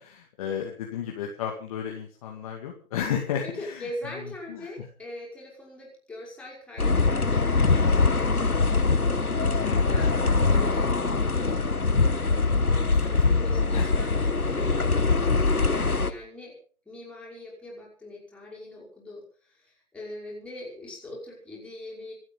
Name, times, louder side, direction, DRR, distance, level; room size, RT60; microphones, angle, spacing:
voice 1, 0.0-3.9 4.5-4.7 9.6-9.9 13.7-13.9, left 8 dB, 25° left, 1 dB, 2.2 m, -33 dB
voice 2, 3.4-8.2 9.9-15.0 15.4-16.6 16.9-22.1, left 1 dB, 5° left, -4 dB, 5.3 m, -42 dB
sound 1, 6.8-16.1, left 3 dB, 90° left, 1.4 m, -23 dB
26.5 x 8.9 x 5.6 m, 0.43 s
figure-of-eight pair, 140°, 43 cm